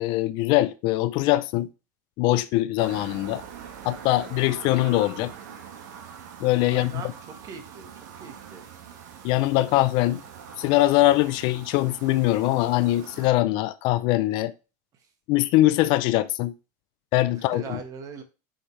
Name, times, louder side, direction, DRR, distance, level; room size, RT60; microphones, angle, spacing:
voice 1, 0.0-1.7 2.2-3.4 3.8-5.3 6.4-6.9 9.2-10.2 10.6-14.5 15.3-16.5 17.1-17.8, left 16 dB, 55° left, 0.5 m, -22 dB
sound 1, 2.8-13.3, right 7 dB, 80° right, 1.3 m, -43 dB
voice 2, 6.7-7.2 7.4-7.9 8.2-8.7 14.9-15.1 17.3-18.2, right 6 dB, 35° right, 1.4 m, -40 dB
7.8 x 5.2 x 3.2 m
supercardioid pair, 135°, 9 cm